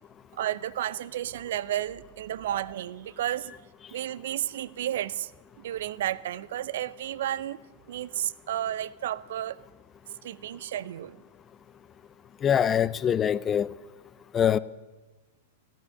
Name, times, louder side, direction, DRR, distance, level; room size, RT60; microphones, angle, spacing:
voice 1, 0.3-3.5 3.9-5.3 5.6-7.6 7.9-9.6 10.2-11.2, right 12 dB, 65° right, 0.5 m, -32 dB
voice 2, 12.4-13.7 14.3-14.6, left 9 dB, 25° left, 0.4 m, -24 dB
13.5 x 12.0 x 6.4 m
hypercardioid pair, 105°, 0 cm